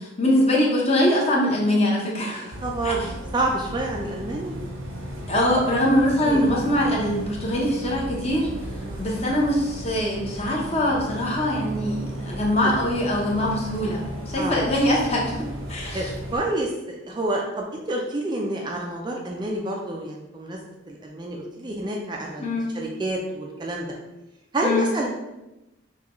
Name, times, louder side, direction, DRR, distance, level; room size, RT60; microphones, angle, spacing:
voice 1, 0.0-2.5 2.8-2.9 5.3-8.5 9.0-15.3 15.7-16.1 22.4-22.7 24.6-24.9, left 1 dB, 30° left, -3 dB, 0.9 m, -23 dB
voice 2, 2.4-4.5 6.2-6.5 8.8-9.2 14.4-14.6 15.9-16.1 16.3-20.6 20.9-22.5 22.7-23.9 24.5-25.1, right 1 dB, 20° right, 0 dB, 0.4 m, -28 dB
Bus, 2.5-16.4, equal, 85° right, 0.8 m, -35 dB
5.7 x 2.3 x 3.0 m, 0.97 s
head